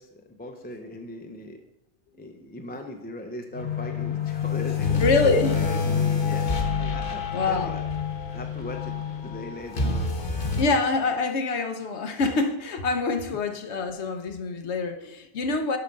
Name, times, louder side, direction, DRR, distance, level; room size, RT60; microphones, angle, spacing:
voice 1, 0.0-1.6 2.2-7.8 8.3-10.2, left 1 dB, 10° left, 3 dB, 0.6 m, -38 dB
sound 1, 3.5-10.6, left 5 dB, 55° left, 1.3 m, -27 dB
voice 2, 5.0-5.6 7.3-7.8 10.6-15.8, left 3 dB, 80° left, 6 dB, 1.1 m, -25 dB
7.2 x 5.8 x 5.3 m, 0.90 s
omnidirectional pair, 1.1 m